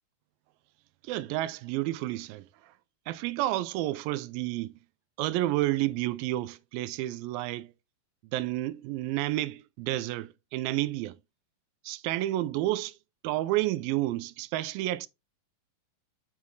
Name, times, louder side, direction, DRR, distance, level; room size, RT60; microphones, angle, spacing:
voice 1, 1.0-2.5 3.1-4.7 5.2-7.7 8.3-11.2 11.9-13.0 13.2-15.1, right 16 dB, 90° right, 2.3 m, -30 dB
6.2 x 5.5 x 3.1 m
omnidirectional pair, 4.0 m